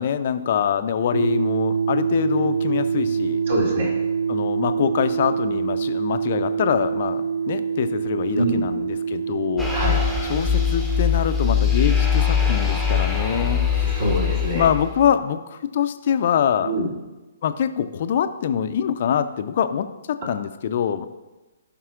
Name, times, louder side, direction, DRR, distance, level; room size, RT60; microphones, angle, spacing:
voice 1, 0.0-3.4 4.3-9.9 10.2-13.9 14.5-16.7 17.4-21.1, left 8 dB, 50° left, 10 dB, 0.5 m, -24 dB
sound 1, 1.1-15.1, right 6 dB, 75° right, 0.3 m, -26 dB
voice 2, 3.5-3.9 8.3-8.6 9.7-10.0 13.9-14.6 16.6-16.9, equal, 55° right, -2 dB, 2.7 m, -24 dB
sound 2, 9.6-15.1, left 8 dB, 5° right, 1.0 m, -22 dB
15.0 x 5.5 x 2.4 m, 1.1 s
figure-of-eight pair, 125°, 0 cm